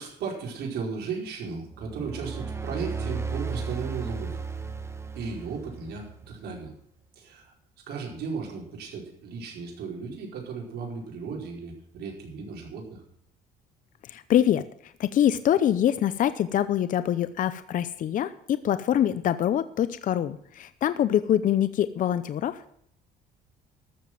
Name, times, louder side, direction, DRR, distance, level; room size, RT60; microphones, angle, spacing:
voice 1, 0.0-4.4 5.1-6.7 7.1-7.5 7.9-13.0, right 5 dB, 70° right, 1 dB, 4.8 m, -35 dB
sound 1, 1.6-6.3, right 5 dB, 15° right, 1.3 m, -35 dB
voice 2, 14.0-22.7, left 10 dB, 50° left, 13 dB, 0.7 m, -25 dB
13.5 x 7.1 x 7.6 m, 0.67 s
cardioid pair, 110°, 17 cm